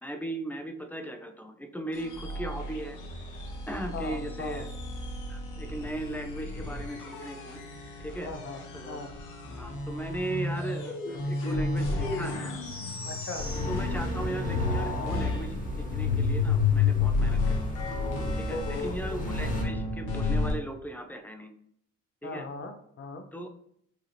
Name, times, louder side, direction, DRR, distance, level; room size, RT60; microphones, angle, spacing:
voice 1, 0.0-3.0 3.7-4.7 5.3-7.6 8.0-8.3 8.7-9.0 9.6-12.5 13.7-17.6 18.4-21.5 22.2-22.5 23.3-23.5, right 1 dB, 5° left, 6 dB, 0.5 m, -37 dB
sound 1, 1.9-14.2 14.5-20.5, left 4 dB, 85° left, 1.1 m, -31 dB
voice 2, 3.9-4.7 8.2-9.1 13.0-13.5 18.5-19.3 22.2-23.3, left 3 dB, 45° left, 6 dB, 0.8 m, -38 dB
sound 2, 13.3-19.6, left 1 dB, 25° left, 1.3 m, -34 dB
4.7 x 2.9 x 3.2 m, 0.70 s
cardioid pair, 90°, 30 cm